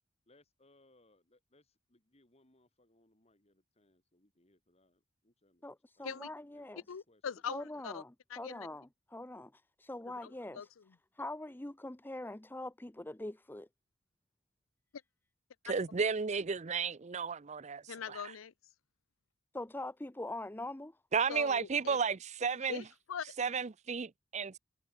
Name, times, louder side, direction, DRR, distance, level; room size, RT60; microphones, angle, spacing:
voice 1, 0.3-5.7 6.0-6.2 6.5-7.2, left 2 dB, 30° left, 3.1 m, -69 dB
voice 2, 5.6-6.8 7.5-10.6 11.2-13.7 19.5-21.0, left 2 dB, 10° left, 0.6 m, -43 dB
voice 3, 6.9-8.0 8.3-8.7 10.2-10.9 17.9-18.5 21.3-22.0 22.7-23.4, left 7 dB, 85° left, 0.5 m, -42 dB
voice 4, 15.6-17.8 18.1-18.2 21.1-22.8 23.4-24.6, right 5 dB, 35° right, 0.6 m, -33 dB
head